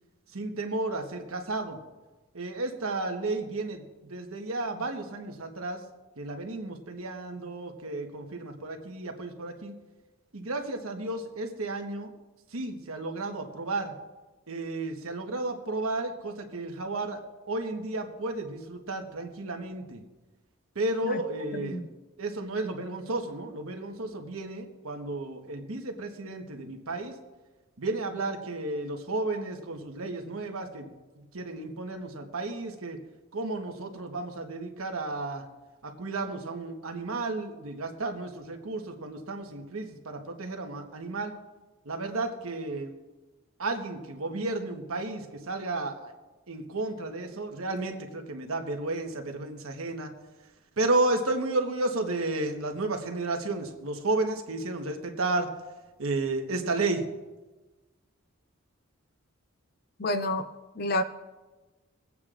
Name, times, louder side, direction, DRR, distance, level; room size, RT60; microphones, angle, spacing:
voice 1, 0.3-1.8 2.3-5.8 6.2-9.7 10.3-12.1 12.5-13.9 14.5-17.2 17.5-20.0 20.7-21.8 22.2-27.2 27.8-30.9 31.3-33.0 33.3-35.4 35.8-41.3 41.8-42.9 43.6-46.1 46.5-50.1 50.8-55.5 56.0-57.0, right 2 dB, 85° right, 4 dB, 1.2 m, -32 dB
voice 2, 21.5-21.9 60.0-60.5 60.8-61.0, left 1 dB, 45° left, 10 dB, 0.6 m, -29 dB
23.5 x 8.4 x 2.5 m, 1.2 s
head